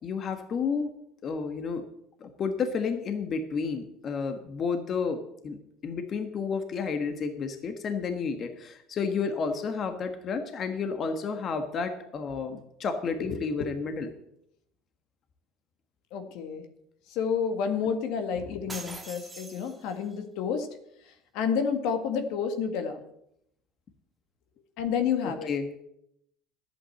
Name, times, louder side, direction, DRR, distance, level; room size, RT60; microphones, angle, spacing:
voice 1, 0.0-0.9 1.2-1.8 2.2-5.6 5.8-14.1 25.2-25.7, left 5 dB, 45° left, 7 dB, 1.5 m, -31 dB
voice 2, 16.1-16.6 17.1-20.7 21.3-23.0 24.8-25.5, left 6 dB, 70° left, 7 dB, 1.8 m, -29 dB
sound 1, 18.7-20.2, right 3 dB, 15° right, 1.8 m, -43 dB
11.0 x 8.7 x 7.7 m, 0.77 s
supercardioid pair, 100°, 0 cm